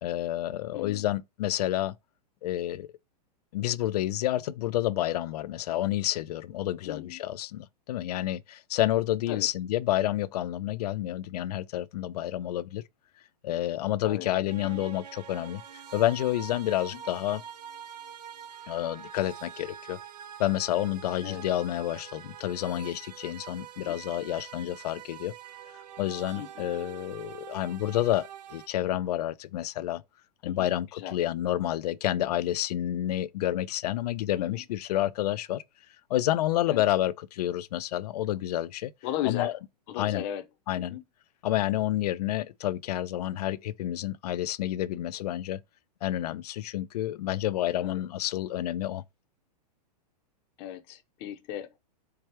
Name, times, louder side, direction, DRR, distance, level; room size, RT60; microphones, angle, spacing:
voice 1, 0.0-1.9 2.4-2.9 3.5-12.8 13.4-15.6 15.9-17.4 18.7-20.0 20.4-25.3 26.0-30.0 30.4-35.6 36.1-38.9 39.3-39.5 40.0-40.2 40.7-41.0 41.4-45.6 46.0-49.0, left 13 dB, 65° left, 0.4 m, -29 dB
voice 2, 6.8-7.2 9.3-9.5 14.0-14.3 16.9-17.0 21.2-21.4 23.8-24.0 26.4-26.7 30.4-31.1 34.4-34.6 36.7-36.8 39.0-39.5 39.9-40.4 40.7-41.0 47.8-48.0 50.6-51.8, left 11 dB, 40° left, 0.7 m, -36 dB
sound 1, 14.5-28.7, right 9 dB, 75° right, 0.9 m, -45 dB
4.6 x 2.3 x 3.0 m
hypercardioid pair, 140°, 21 cm